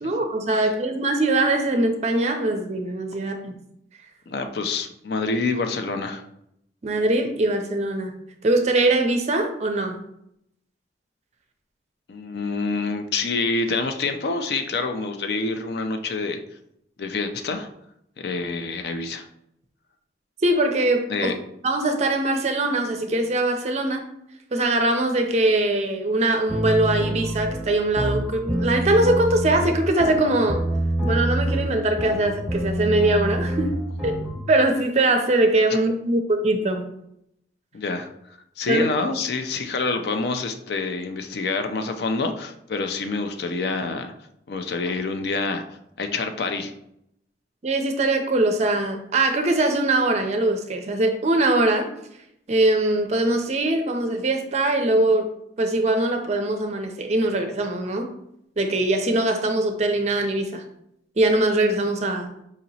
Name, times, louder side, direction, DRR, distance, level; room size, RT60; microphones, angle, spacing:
voice 1, 0.0-3.6 6.8-8.1 8.4-10.0 20.4-21.3 21.6-24.0 24.5-30.6 31.1-33.8 34.0-36.8 38.7-38.9 47.6-51.9 52.5-55.3 55.6-58.1 58.6-60.6 61.2-62.3, right 2 dB, 35° right, 5 dB, 0.4 m, -22 dB
voice 2, 4.3-6.2 12.1-16.4 17.0-17.7 18.2-19.3 21.1-21.3 37.7-38.1 38.6-44.1 44.5-45.6 46.0-46.7, left 3 dB, 60° left, 6 dB, 0.4 m, -27 dB
sound 1, 26.5-34.4, right 1 dB, ahead, 0.8 m, -26 dB
4.9 x 2.8 x 2.7 m, 0.76 s
head